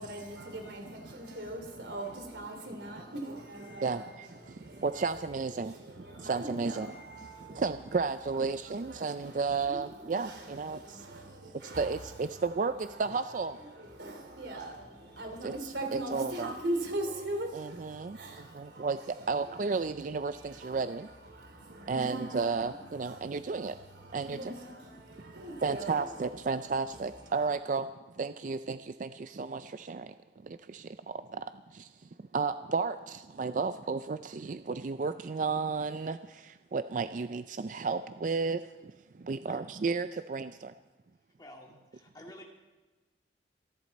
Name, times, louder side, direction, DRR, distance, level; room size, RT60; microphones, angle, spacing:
voice 1, 0.0-7.8 8.3-19.4 20.1-26.7 27.2-27.5, right 1 dB, 75° right, 4 dB, 3.0 m, -42 dB
voice 2, 4.8-5.7 6.2-6.9 7.6-10.8 11.8-13.6 15.4-15.5 15.9-16.5 17.5-18.2 18.6-19.0 19.3-21.1 21.9-23.7 24.1-24.5 25.6-27.9 28.2-30.1 30.7-30.8 32.3-36.2 36.7-38.6 39.3-40.7, right 4 dB, 45° right, 11 dB, 0.4 m, -32 dB
voice 3, 41.4-42.5, left 1 dB, 20° left, 0 dB, 2.4 m, -50 dB
27.0 x 11.5 x 4.2 m, 1.2 s
head